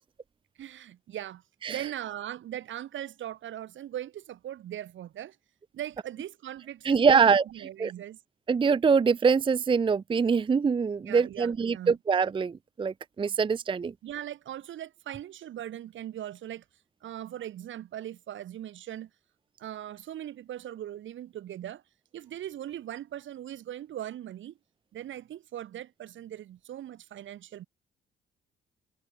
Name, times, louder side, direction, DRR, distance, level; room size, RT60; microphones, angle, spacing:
voice 1, 0.6-1.4 1.7-5.4 5.7-8.2 11.0-11.9 14.0-16.6 17.0-19.1 19.6-21.8 22.1-24.5 24.9-27.6, right 11 dB, 75° right, 6.6 m, -39 dB
voice 2, 6.8-7.4 7.8-7.9 8.5-13.9, right 5 dB, 25° right, 0.5 m, -24 dB
cardioid pair, 90°, 20 cm